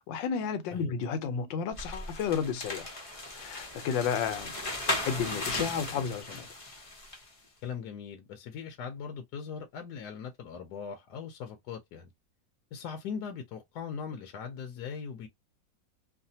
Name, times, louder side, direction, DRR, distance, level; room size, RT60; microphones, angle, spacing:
voice 1, 0.1-2.9 3.3-4.5 4.9-6.5, left 7 dB, 85° left, 1.4 m, -32 dB
sound 1, 1.7-7.3, left 1 dB, 45° left, 0.4 m, -37 dB
voice 2, 7.6-12.1 12.7-15.3, left 6 dB, 70° left, 1.1 m, -40 dB
3.2 x 2.2 x 2.7 m
omnidirectional pair, 2.0 m